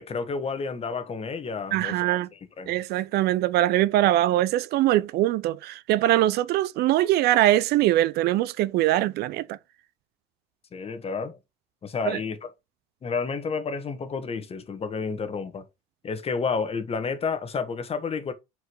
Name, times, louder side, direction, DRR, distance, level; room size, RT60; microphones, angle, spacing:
voice 1, 0.0-2.2 2.6-2.7 10.7-11.4 11.8-12.5 13.0-15.6 16.0-18.3, left 5 dB, 30° left, 1.4 m, -30 dB
voice 2, 1.7-2.3 2.7-9.6 12.1-12.2, right 14 dB, 60° right, 0.5 m, -22 dB
4.9 x 4.7 x 4.7 m
supercardioid pair, 90°, 19 cm